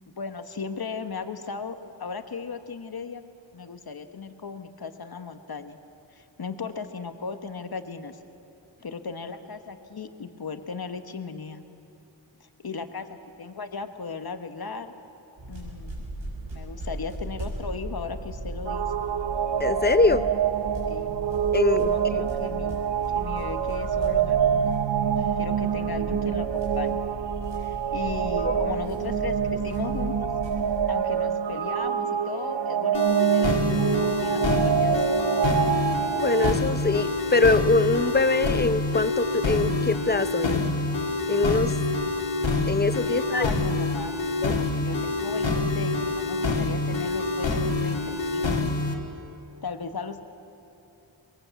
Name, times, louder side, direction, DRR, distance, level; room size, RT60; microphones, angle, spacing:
voice 1, 0.1-3.2 3.5-5.8 6.1-8.2 8.8-11.6 12.4-14.9 15.5-15.9 16.5-18.9 20.9-21.2 21.7-22.8 23.1-24.7 25.4-27.0 27.6-30.3 30.9-35.0 43.1-44.1 44.6-48.6 49.6-50.2, left 5 dB, 55° left, 8 dB, 1.4 m, -36 dB
sound 1, 15.4-30.8, right 1 dB, 90° right, 6.8 m, -37 dB
sound 2, 18.6-36.6, right 8 dB, 65° right, 0.9 m, -26 dB
voice 2, 19.6-20.3 21.5-22.2 28.4-28.5 36.1-40.6 41.3-41.7 42.7-43.5 44.4-44.6, left 3 dB, 20° left, 12 dB, 0.8 m, -23 dB
sound 3, 32.9-48.9, left 3 dB, 80° left, 2.3 m, -26 dB
23.5 x 21.5 x 8.2 m, 2.9 s
wide cardioid pair, 80°, 45 cm